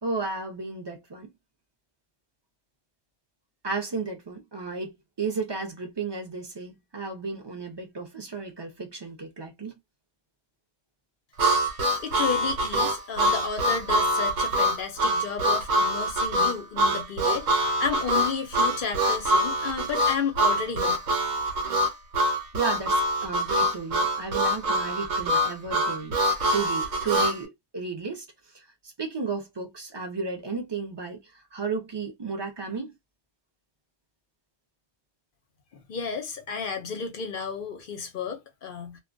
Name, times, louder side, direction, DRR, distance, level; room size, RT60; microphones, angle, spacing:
voice 1, 0.0-1.3 3.6-9.7 22.3-26.2 26.5-28.2 28.5-28.6 29.0-31.2 31.5-32.9, right 4 dB, 30° right, 0.5 m, -33 dB
Harmonica, 11.4-27.4, equal, 90° right, 1.1 m, -24 dB
voice 2, 12.0-21.0 35.9-39.0, left 5 dB, 55° left, 0.6 m, -32 dB
2.2 x 2.2 x 2.5 m
omnidirectional pair, 1.3 m